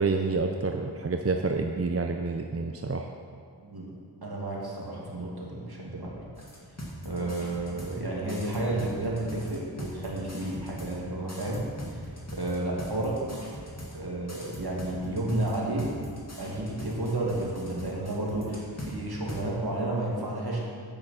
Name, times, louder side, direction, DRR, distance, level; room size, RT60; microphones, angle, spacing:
voice 1, 0.0-3.1, right 3 dB, 35° right, 4 dB, 0.6 m, -28 dB
voice 2, 3.6-3.9 4.2-6.2 7.0-12.1 12.3-13.3 13.9-15.9 16.4-20.6, right 2 dB, 60° right, -4 dB, 2.4 m, -31 dB
sound 1, 6.3-8.0 8.3-11.0 11.3-14.0 14.3-18.9 19.3-19.4, equal, 35° left, 2.3 m, -41 dB
9.2 x 8.6 x 5.7 m, 2.2 s
wide cardioid pair, 45°, 43 cm